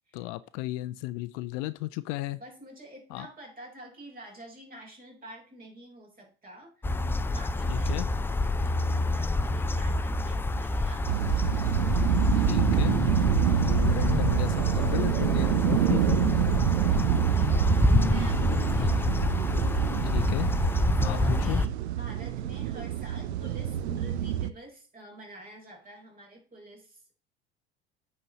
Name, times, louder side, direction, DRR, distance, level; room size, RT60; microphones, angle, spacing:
voice 1, 0.1-2.4 3.1-3.3 7.7-8.1 12.5-13.0 13.6-16.2 20.0-20.5 21.0-21.6, left 18 dB, 55° left, 15 dB, 0.5 m, -34 dB
voice 2, 2.4-11.2 16.7-19.2 20.7-27.1, equal, 25° right, 0 dB, 4.4 m, -48 dB
sound 1, 6.8-21.7, left 2 dB, 5° left, 0.4 m, -27 dB
sound 2, 11.1-24.5, right 11 dB, 70° right, 0.6 m, -27 dB
9.2 x 4.3 x 5.3 m, 0.39 s
figure-of-eight pair, 70°, 34 cm